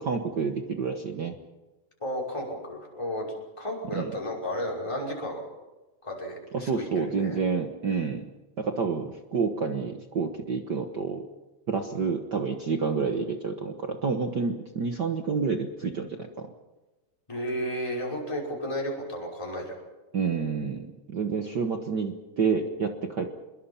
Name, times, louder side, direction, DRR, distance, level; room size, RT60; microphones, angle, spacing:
voice 1, 0.0-1.4 3.9-4.1 6.5-8.2 8.6-11.3 11.7-16.5 20.1-23.3, right 5 dB, 65° right, 5 dB, 1.0 m, -29 dB
voice 2, 2.0-5.4 6.0-7.4 17.3-19.8, equal, 10° left, -2 dB, 5.5 m, -33 dB
26.5 x 22.0 x 5.7 m, 1.1 s
omnidirectional pair, 3.8 m